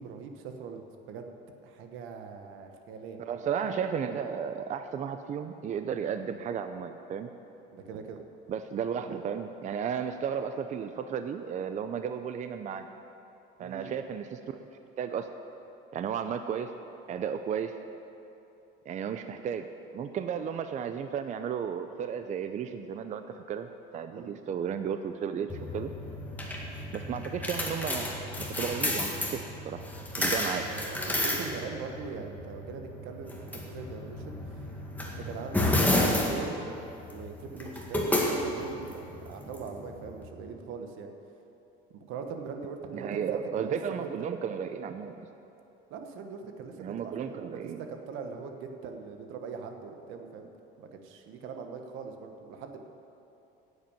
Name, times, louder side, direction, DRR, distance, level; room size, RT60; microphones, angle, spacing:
voice 1, 0.0-1.3 1.6-3.2 7.7-8.2 13.6-13.9 24.1-24.4 30.6-34.7 35.1-35.7 35.9-36.7 37.0-41.1 41.9-44.1 45.9-50.5 50.8-52.8, right 5 dB, 75° right, 5 dB, 1.3 m, -41 dB
voice 2, 3.2-7.3 8.5-12.9 13.6-14.7 15.0-15.3 15.9-16.7 17.1-17.8 18.9-19.7 19.9-25.9 26.9-29.8 30.2-30.7 42.9-45.3 46.8-47.8, right 7 dB, 35° right, 8 dB, 0.5 m, -34 dB
sound 1, 25.5-40.2, left 1 dB, 10° left, 1.8 m, -32 dB
11.0 x 8.0 x 8.8 m, 2.9 s
cardioid pair, 130°, 20 cm